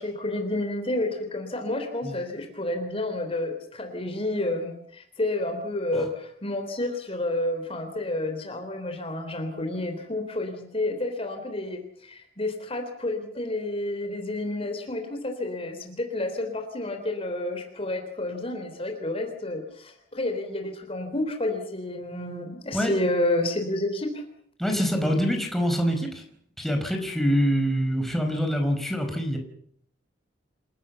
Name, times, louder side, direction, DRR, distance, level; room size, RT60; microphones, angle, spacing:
voice 1, 0.0-24.2, left 1 dB, 30° left, 5 dB, 3.6 m, -30 dB
voice 2, 24.6-26.2 26.6-29.4, equal, ahead, 3 dB, 4.8 m, -25 dB
28.5 x 17.5 x 7.0 m, 0.65 s
head